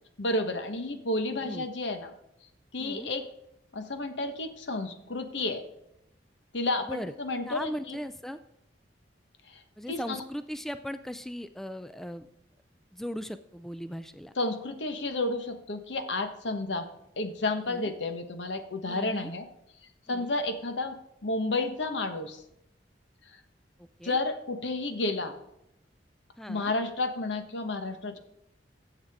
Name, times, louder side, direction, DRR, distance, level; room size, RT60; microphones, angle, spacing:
voice 1, 0.2-2.1 2.7-3.2 3.7-5.6 6.5-8.0 9.5-9.6 9.9-10.2 14.4-16.9 17.2-19.4 20.1-21.0 21.2-22.4 24.0-25.3 26.5-28.2, left 2 dB, 80° left, 7 dB, 1.2 m, -31 dB
voice 2, 1.3-1.7 2.8-3.1 6.8-7.1 7.5-8.4 9.8-12.3 12.9-14.3 17.6-17.9 18.8-19.3 20.1-20.3 23.8-24.2 26.4-26.7, equal, ahead, 11 dB, 0.3 m, -38 dB
15.0 x 7.3 x 3.6 m, 0.83 s
head